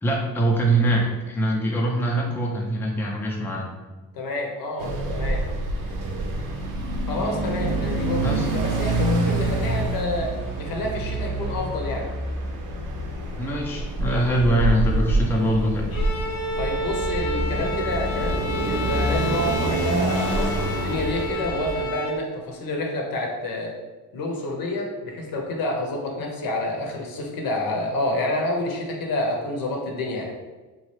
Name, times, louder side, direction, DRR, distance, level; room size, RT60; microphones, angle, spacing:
voice 1, 0.0-3.7 8.2-8.5 13.4-15.9, right 1 dB, 5° left, -2 dB, 0.5 m, -23 dB
voice 2, 4.1-5.4 7.1-12.1 16.6-23.7 24.1-30.3, left 1 dB, 75° left, 0 dB, 0.8 m, -28 dB
sound 1, 4.8-21.8, right 2 dB, 65° right, 0.7 m, -27 dB
Bowed string instrument, 15.9-22.3, equal, 45° left, 0.7 m, -30 dB
3.0 x 2.3 x 3.1 m, 1.2 s
cardioid pair, 85°, 35 cm